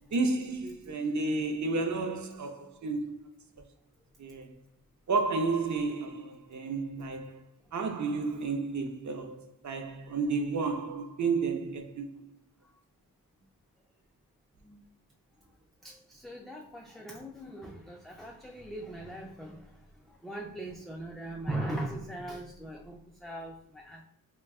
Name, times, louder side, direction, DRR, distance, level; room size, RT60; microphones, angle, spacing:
voice 1, 0.1-3.2 4.2-4.5 5.1-7.4 7.7-12.2, right 3 dB, 55° right, 0.6 m, -31 dB
voice 2, 15.8-24.0, right 1 dB, ahead, 0.3 m, -40 dB
4.5 x 2.2 x 2.3 m
wide cardioid pair, 95°, 34 cm